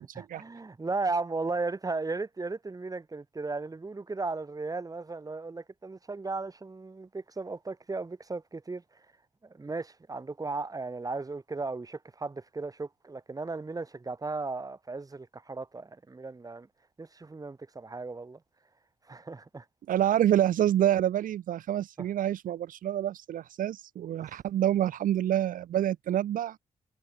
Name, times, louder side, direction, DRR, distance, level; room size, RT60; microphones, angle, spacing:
voice 1, 0.0-9.0 9.4-16.7 17.0-18.4 19.1-19.7 22.0-22.1 24.2-24.3, right 3 dB, 25° right, 3.7 m, -36 dB
voice 2, 19.9-26.6, right 11 dB, 75° right, 0.6 m, -27 dB
cardioid pair, 105°, 14 cm